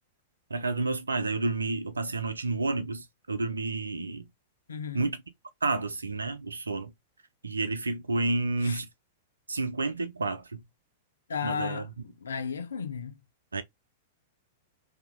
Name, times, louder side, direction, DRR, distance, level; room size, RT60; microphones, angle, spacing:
voice 1, 0.5-4.2 4.9-5.2 5.6-6.9 7.4-8.9 9.5-10.6 11.4-11.8 13.5-13.6, right 3 dB, 85° right, 0.7 m, -30 dB
voice 2, 4.7-5.1 8.6-8.8 11.3-13.2, left 7 dB, 75° left, 0.7 m, -34 dB
3.7 x 2.9 x 3.6 m
figure-of-eight pair, 100°, 0 cm